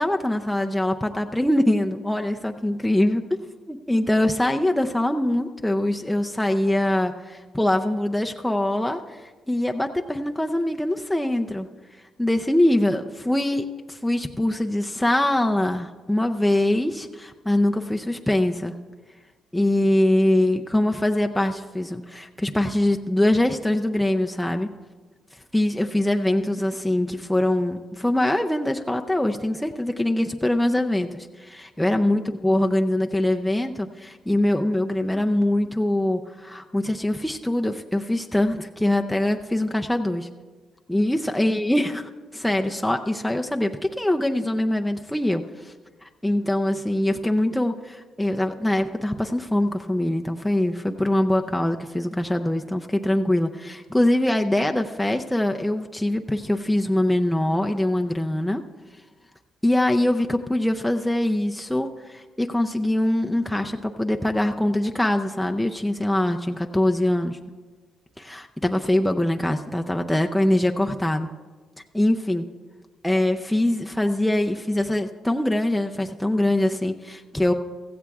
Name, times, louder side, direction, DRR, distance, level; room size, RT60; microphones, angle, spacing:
voice 1, 0.0-3.4 3.7-11.7 12.2-18.7 19.5-24.7 25.5-40.3 40.9-45.7 46.0-58.6 59.6-67.4 68.2-71.3 71.9-72.4 73.0-77.5, left 1 dB, 5° left, 3 dB, 0.5 m, -23 dB
16.0 x 14.5 x 2.4 m, 1.4 s
cardioid pair, 90°, 0 cm